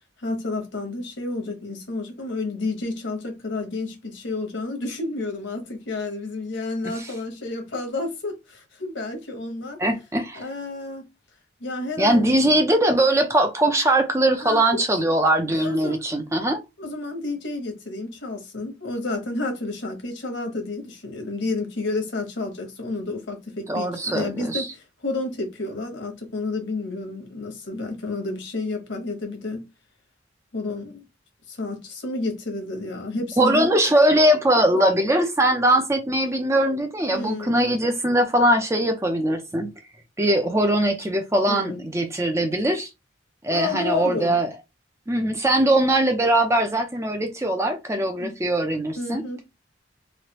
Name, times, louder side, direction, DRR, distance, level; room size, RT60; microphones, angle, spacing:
voice 1, 0.2-9.8 10.3-11.1 11.6-12.4 14.4-14.8 15.5-16.0 16.8-24.7 25.0-29.7 30.5-31.0 31.5-33.7 37.1-37.6 41.5-41.9 43.5-44.4 48.2-48.4 49.0-49.4, left 2 dB, 70° left, 1.1 m, -30 dB
voice 2, 9.8-10.4 12.0-16.6 23.7-24.7 33.4-39.7 40.2-42.9 43.4-44.5 45.1-49.2, right 1 dB, 15° right, 0.5 m, -21 dB
3.2 x 2.4 x 2.9 m
head